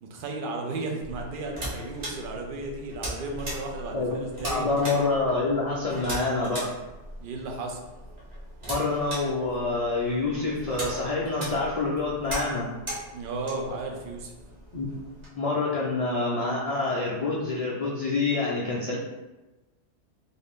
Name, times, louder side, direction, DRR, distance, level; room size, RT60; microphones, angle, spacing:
voice 1, 0.0-4.6 7.2-7.8 13.1-14.3, right 3 dB, 60° right, 1 dB, 0.6 m, -34 dB
sound 1, 1.0-15.3, right 1 dB, 40° right, 1.0 m, -39 dB
voice 2, 3.9-6.7 8.7-12.7 14.7-14.8 15.3-19.0, left 3 dB, 65° left, -5 dB, 0.3 m, -27 dB
2.6 x 2.5 x 3.4 m, 1.1 s
omnidirectional pair, 1.2 m